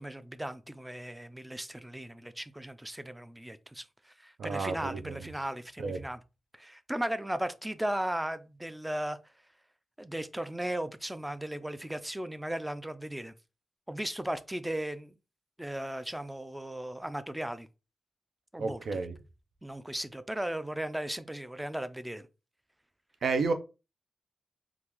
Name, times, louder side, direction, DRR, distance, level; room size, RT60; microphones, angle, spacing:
voice 1, 0.0-6.2 6.5-9.2 10.0-13.3 13.9-15.1 15.6-17.7 18.5-19.0 19.6-22.3, right 1 dB, 10° right, 0.3 m, -36 dB
voice 2, 4.4-5.3 5.8-6.1 18.6-19.2 23.2-23.5, right 4 dB, 80° right, 0.5 m, -31 dB
3.6 x 2.5 x 2.9 m
wide cardioid pair, 115°, 0 cm